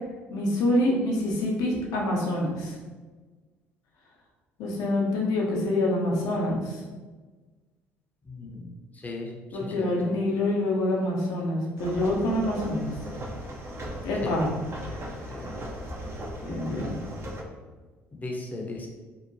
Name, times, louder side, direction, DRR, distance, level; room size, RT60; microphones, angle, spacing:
voice 1, 0.3-2.7 4.6-6.8 9.5-13.0 14.0-14.6 14.9-15.1 16.4-17.0, left 1 dB, 70° left, -2 dB, 0.6 m, -26 dB
voice 2, 8.3-8.7 8.9-9.3 9.6-10.2 14.2-14.4 15.3-15.6 18.2-18.9, left 2 dB, 25° left, 0 dB, 0.6 m, -36 dB
sound 1, 11.8-17.4, equal, 40° right, 0.6 m, -37 dB
2.7 x 2.1 x 2.6 m, 1.3 s
hypercardioid pair, 60°, 6 cm